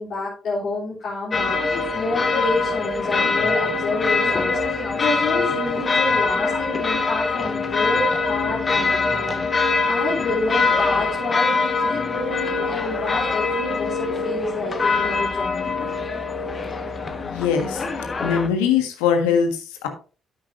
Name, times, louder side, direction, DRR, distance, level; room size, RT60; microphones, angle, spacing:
voice 1, 0.0-15.8, left 3 dB, 65° left, -6 dB, 3.5 m, -29 dB
sound 1, 1.3-18.5, left 4 dB, 40° left, 1.4 m, -23 dB
voice 2, 17.2-17.8 18.2-19.9, left 7 dB, 85° left, 5 dB, 1.5 m, -21 dB
10.5 x 8.8 x 2.6 m, 0.37 s
hypercardioid pair, 50°, 0 cm